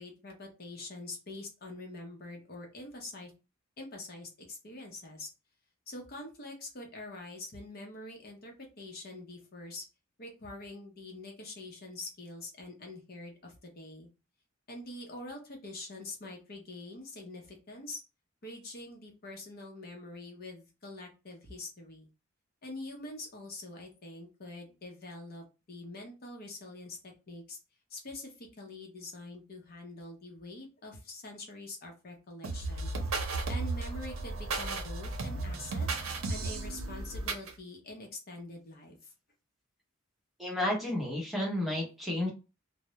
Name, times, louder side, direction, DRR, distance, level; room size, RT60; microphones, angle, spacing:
voice 1, 0.0-3.3 3.8-5.3 5.9-9.8 10.2-14.1 14.7-18.0 18.4-22.1 22.6-27.6 27.9-32.9 33.5-35.9 36.3-39.1, left 2 dB, 50° left, 2 dB, 0.6 m, -45 dB
sound 1, 32.4-37.5, right 3 dB, 85° right, 0.6 m, -34 dB
voice 2, 40.4-42.3, left 1 dB, ahead, -3 dB, 0.8 m, -31 dB
2.2 x 2.0 x 2.8 m, 0.29 s
head